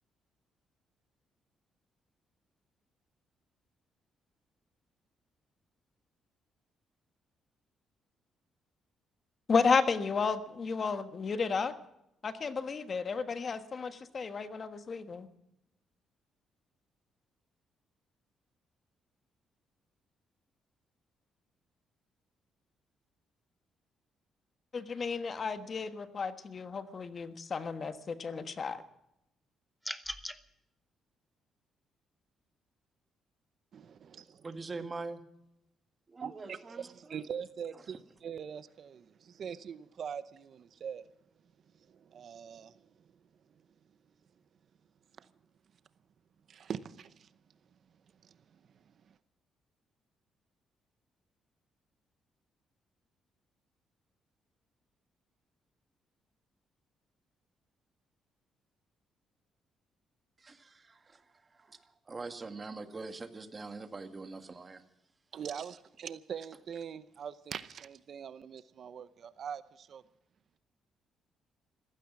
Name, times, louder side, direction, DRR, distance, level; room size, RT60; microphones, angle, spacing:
voice 1, 9.5-11.7 12.2-15.3 24.7-28.8, left 5 dB, 45° left, 1.3 m, -32 dB
sound 1, 29.8-30.4, equal, 5° left, 1.0 m, -39 dB
voice 2, 33.7-34.5 36.2-41.1 41.7-43.0 43.5-43.6 45.1-45.3 46.5-47.3 48.2-49.2 65.3-70.0, right 7 dB, 60° right, 0.8 m, -43 dB
voice 3, 34.4-35.2 36.1-37.3 60.4-64.8, right 3 dB, 30° right, 1.8 m, -44 dB
15.5 x 15.5 x 6.1 m
cardioid pair, 90°, 0 cm